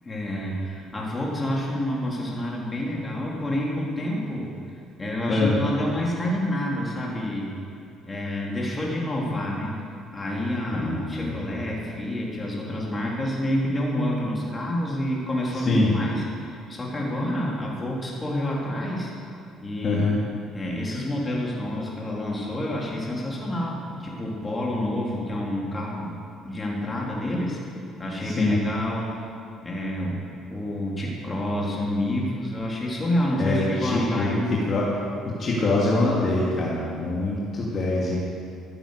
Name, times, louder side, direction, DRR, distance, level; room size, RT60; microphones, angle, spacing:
voice 1, 0.0-4.5 5.0-7.5 8.1-9.7 10.1-19.1 19.6-20.1 20.5-27.6 28.0-29.1 29.6-30.2 30.5-34.5, left 1 dB, 25° left, -3 dB, 3.9 m, -28 dB
voice 2, 5.3-5.6 10.7-11.4 15.7-15.9 19.8-20.1 28.2-28.6 33.4-34.9 35.2-38.2, left 2 dB, 50° left, -5 dB, 2.7 m, -24 dB
15.0 x 8.7 x 6.8 m, 2.4 s
supercardioid pair, 70°, 0 cm